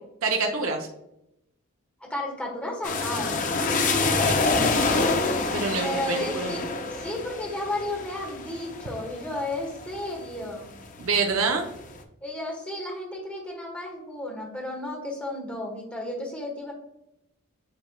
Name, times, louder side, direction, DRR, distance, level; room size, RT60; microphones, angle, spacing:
voice 1, 0.2-0.9 4.0-4.4 5.5-6.5 11.0-11.7, right 4 dB, 65° right, 2 dB, 0.6 m, -27 dB
voice 2, 2.0-3.5 5.8-10.7 12.2-16.7, left 1 dB, 5° left, -1 dB, 1.2 m, -33 dB
sound 1, 2.8-10.5 11.0-11.7, left 3 dB, 35° left, 0.5 m, -27 dB
7.7 x 3.0 x 2.2 m, 0.84 s
head